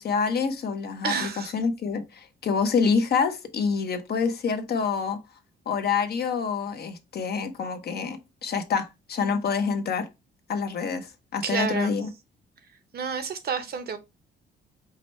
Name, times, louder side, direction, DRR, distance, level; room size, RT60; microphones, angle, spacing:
voice 1, 0.0-5.2 5.7-10.1 10.5-12.1, left 5 dB, 55° left, 0.8 m, -27 dB
voice 2, 1.0-1.5 11.4-12.0 12.9-14.0, right 6 dB, 55° right, 0.8 m, -29 dB
4.8 x 2.1 x 4.3 m
cardioid pair, 90°, 20 cm